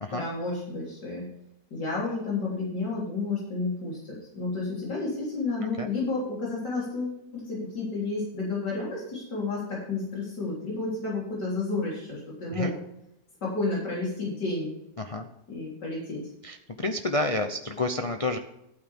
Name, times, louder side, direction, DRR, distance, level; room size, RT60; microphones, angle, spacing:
voice 1, 0.1-1.2 1.7-12.7 13.4-14.7 15.5-16.2, left 3 dB, 85° left, -5 dB, 4.1 m, -31 dB
voice 2, 15.0-15.3 16.4-18.4, left 2 dB, 65° left, 5 dB, 0.3 m, -29 dB
12.0 x 9.0 x 3.5 m, 0.81 s
omnidirectional pair, 1.8 m